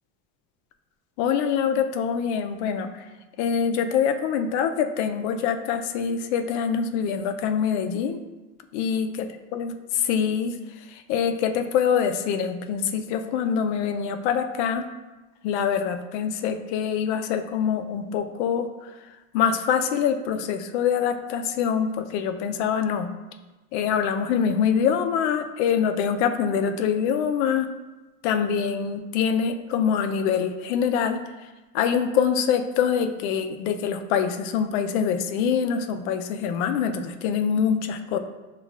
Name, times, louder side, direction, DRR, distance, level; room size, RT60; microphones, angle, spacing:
voice 1, 1.2-2.9 3.4-8.2 8.7-9.1 9.5-10.5 10.9-14.8 15.4-18.9 19.3-23.1 23.7-27.7 28.2-31.2 31.7-38.2, left 7 dB, 90° left, 7 dB, 0.5 m, -24 dB
7.1 x 2.4 x 2.4 m, 1.1 s
cardioid pair, 150°, 33 cm